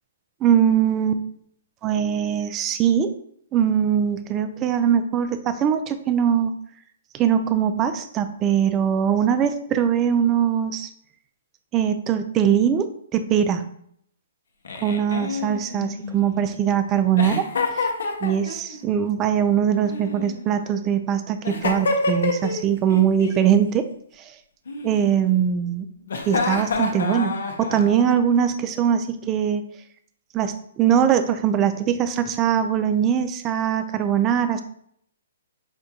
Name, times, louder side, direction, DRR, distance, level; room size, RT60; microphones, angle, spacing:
voice 1, 0.4-1.2 1.8-3.1 3.5-6.5 7.1-10.9 11.7-13.6 14.8-17.4 18.2-23.9 24.8-25.9 26.3-29.6 30.3-34.6, right 8 dB, 25° right, 9 dB, 0.3 m, -21 dB
Giggle, 14.6-16.5 17.2-18.8 19.8-20.8 21.4-22.6 22.9-23.4 24.7-25.4 26.1-28.1, left 3 dB, 70° left, 0.6 m, -28 dB
5.0 x 2.2 x 2.7 m, 0.67 s
hypercardioid pair, 135°, 0 cm